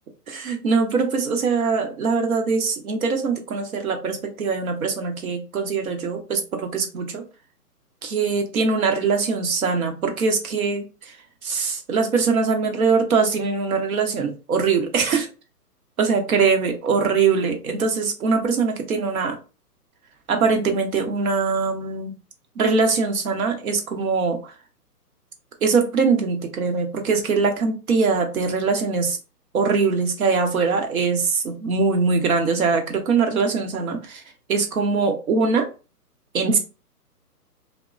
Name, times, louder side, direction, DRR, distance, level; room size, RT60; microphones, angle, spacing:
voice 1, 0.3-7.2 8.0-10.8 11.4-15.3 16.0-19.4 20.3-22.1 22.6-24.4 25.6-29.2 29.5-34.2 34.5-35.7 36.3-36.6, right 4 dB, 60° right, 4 dB, 0.9 m, -22 dB
2.8 x 2.1 x 2.4 m, 0.32 s
hypercardioid pair, 140°, 48 cm